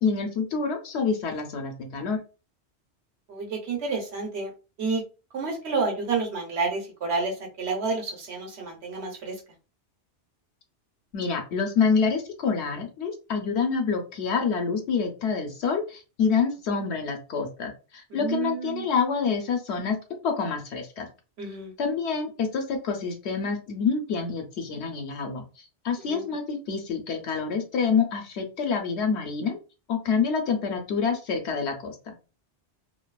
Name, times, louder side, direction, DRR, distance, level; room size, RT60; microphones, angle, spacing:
voice 1, 0.0-2.2 11.1-20.0 20.2-21.1 21.8-25.5 25.8-29.6 29.9-32.1, left 5 dB, 70° left, 4 dB, 0.9 m, -27 dB
voice 2, 3.3-4.5 4.8-5.0 5.3-9.3 18.1-18.9 21.4-21.7 26.0-26.2, right 4 dB, 70° right, 1 dB, 1.0 m, -30 dB
2.6 x 2.3 x 2.3 m, 0.32 s
omnidirectional pair, 1.2 m